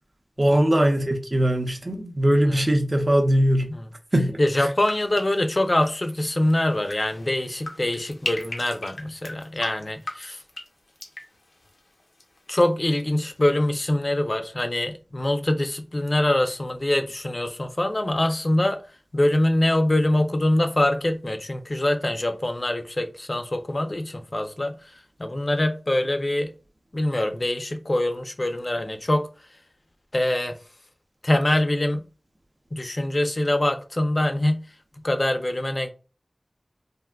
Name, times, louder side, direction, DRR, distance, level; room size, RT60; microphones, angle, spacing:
voice 1, 0.4-3.7 4.1-4.3 4.6-4.7, right 1 dB, 40° right, 0.5 m, -20 dB
voice 2, 4.4-10.4 12.5-18.8 19.1-26.5 26.9-29.3 30.1-30.6 31.2-32.0 32.7-34.6 35.0-35.9, left 1 dB, 45° left, 0.4 m, -24 dB
sound 1, 4.7-12.6 12.9-13.4, left 2 dB, 90° left, 0.6 m, -39 dB
3.4 x 2.4 x 2.2 m
wide cardioid pair, 65°, 0 cm